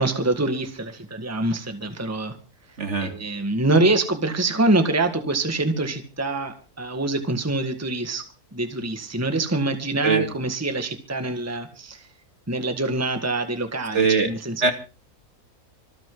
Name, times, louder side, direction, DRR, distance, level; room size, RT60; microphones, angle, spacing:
voice 1, 0.0-2.4 3.0-8.2 8.5-12.1 12.5-14.7, right 2 dB, 10° right, 6 dB, 1.7 m, -25 dB
voice 2, 2.8-3.1 10.0-10.2 13.9-14.3 14.6-14.7, right 4 dB, 50° right, 6 dB, 2.7 m, -20 dB
26.5 x 9.1 x 3.9 m, 0.34 s
omnidirectional pair, 1.6 m